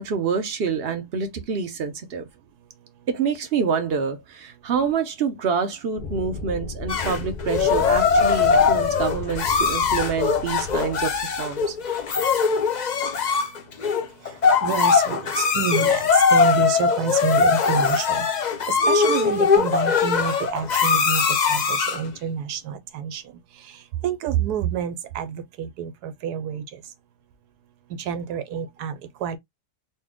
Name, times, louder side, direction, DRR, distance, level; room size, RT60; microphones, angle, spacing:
voice 1, 0.0-2.3 3.1-11.8, right 6 dB, 50° right, 0.8 m, -27 dB
sound 1, 6.0-12.3, left 3 dB, 45° left, 0.7 m, -35 dB
sound 2, 6.9-22.1, left 5 dB, 75° left, 0.4 m, -21 dB
voice 2, 14.2-18.3 18.7-26.8 28.0-28.9 29.2-29.4, right 7 dB, 85° right, 1.2 m, -28 dB
4.2 x 2.2 x 3.6 m
omnidirectional pair, 1.7 m